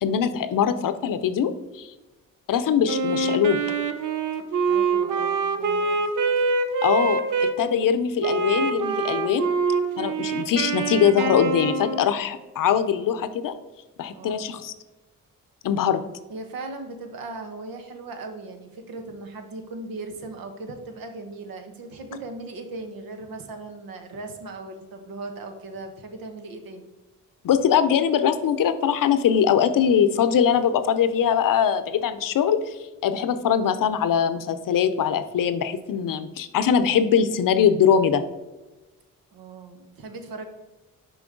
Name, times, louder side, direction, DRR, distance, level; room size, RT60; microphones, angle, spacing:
voice 1, 0.0-1.9 2.5-3.6 6.8-9.5 10.0-13.5 14.0-14.7 15.6-16.0 27.4-38.2, left 8 dB, 70° left, 12 dB, 0.6 m, -22 dB
Wind instrument woodwind instrument, 2.9-7.6 8.2-12.1, right 4 dB, 60° right, 0.8 m, -25 dB
voice 2, 4.7-6.0 14.1-14.5 16.3-26.8 39.3-40.4, right 3 dB, 80° right, 6 dB, 1.1 m, -38 dB
6.1 x 5.1 x 3.8 m, 1.1 s
cardioid pair, 70°, 34 cm